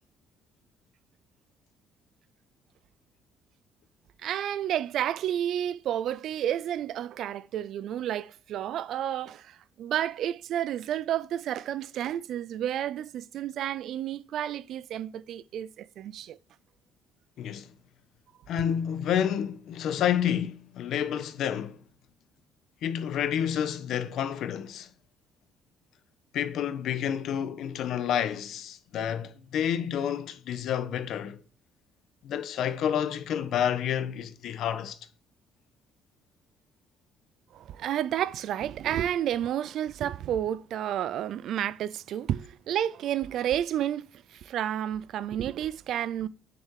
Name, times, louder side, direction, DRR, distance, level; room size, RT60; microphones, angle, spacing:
voice 1, 4.2-16.4 37.5-46.3, right 11 dB, 55° right, 0.4 m, -31 dB
voice 2, 17.4-17.7 18.5-21.8 22.8-24.9 26.3-31.4 32.2-35.0, left 9 dB, 55° left, 1.1 m, -29 dB
9.7 x 7.0 x 4.7 m
cardioid pair, 170°, 0 cm